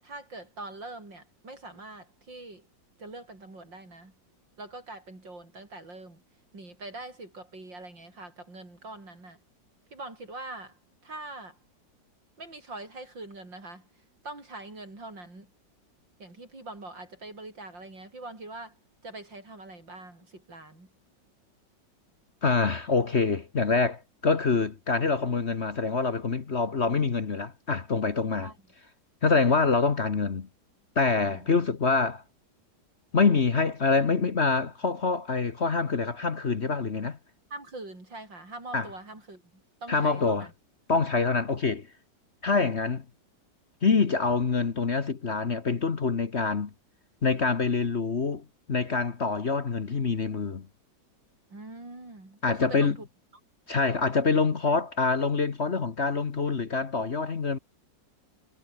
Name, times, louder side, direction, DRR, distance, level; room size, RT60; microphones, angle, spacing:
voice 1, 0.0-2.7 3.0-4.1 4.6-6.2 6.5-9.4 9.9-11.6 12.4-13.9 14.2-15.5 16.2-18.8 19.0-20.9 28.4-28.6 29.3-29.4 31.2-31.5 37.5-40.5 51.5-53.1, right 2 dB, 80° right, 8.1 m, -43 dB
voice 2, 22.4-28.5 29.2-30.5 30.9-32.2 33.1-37.2 38.7-38.9 39.9-40.5 40.9-41.9 42.4-43.0 43.8-46.7 47.2-50.7 52.4-53.0 53.7-57.6, left 4 dB, 40° left, 1.5 m, -25 dB
omnidirectional pair, 2.0 m